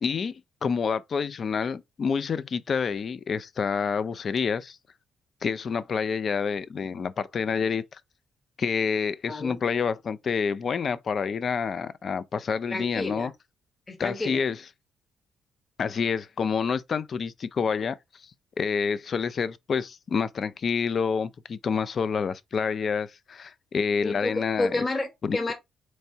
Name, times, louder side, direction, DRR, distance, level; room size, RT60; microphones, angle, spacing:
voice 1, 0.0-4.8 5.4-8.0 8.6-13.3 14.0-14.6 15.8-18.0 18.6-24.8 25.2-25.4, left 6 dB, 50° left, 0.4 m, -28 dB
voice 2, 9.3-9.6 12.7-13.3 13.9-14.4 24.0-25.5, left 2 dB, 25° left, 1.1 m, -30 dB
4.4 x 3.1 x 2.7 m
cardioid pair, 90°, 0 cm